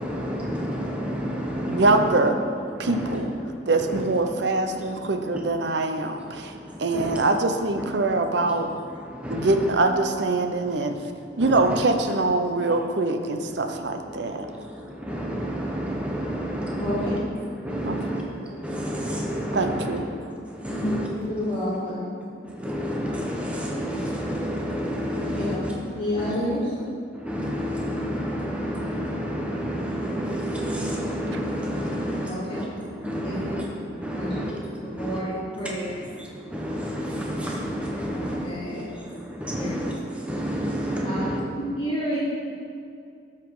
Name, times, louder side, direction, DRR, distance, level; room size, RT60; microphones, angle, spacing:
voice 1, 0.0-2.1 2.6-9.7 10.2-12.8 13.4-21.1 21.3-21.7 22.4-26.6 27.1-35.2 35.6-41.4, equal, 5° right, -2 dB, 1.0 m, -31 dB
voice 2, 1.7-2.4 2.8-3.3 3.7-6.5 6.8-8.7 9.3-11.0 11.4-14.5 17.8-17.9 19.5-20.0, right 2 dB, 60° right, 6 dB, 0.7 m, -23 dB
voice 3, 20.7-22.1 25.3-25.4 25.9-26.6 32.3-32.4 33.2-33.3 34.1-34.4 35.0-35.3 35.6-35.9 38.1-39.0 39.6-39.7 41.0-41.2 41.8-42.2, equal, 25° left, -10 dB, 2.6 m, -29 dB
12.5 x 5.9 x 4.8 m, 2.4 s
head